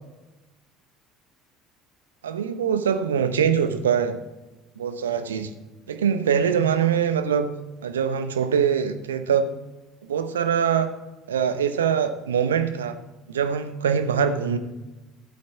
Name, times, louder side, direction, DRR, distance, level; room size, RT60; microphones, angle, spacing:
voice 1, 2.2-4.2 4.8-5.5 5.9-7.6 7.8-9.5 10.1-10.9 11.3-13.0 13.3-14.6, right 7 dB, 80° right, 10 dB, 0.7 m, -23 dB
14.0 x 8.5 x 3.5 m, 1.1 s
figure-of-eight pair, 60°, 0 cm